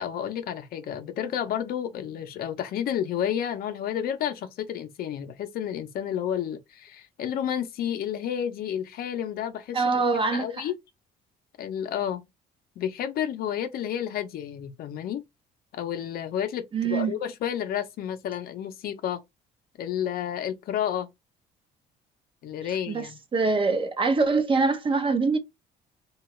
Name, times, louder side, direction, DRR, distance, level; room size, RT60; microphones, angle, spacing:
voice 1, 0.0-10.0 10.3-10.7 11.6-12.2 12.8-15.2 15.7-19.2 19.8-21.1 22.4-23.2, left 9 dB, 60° left, 0.6 m, -31 dB
voice 2, 9.7-10.5 16.7-17.1 22.9-25.4, right 4 dB, 30° right, 0.6 m, -24 dB
2.7 x 2.3 x 3.0 m
cardioid pair, 110°, 17 cm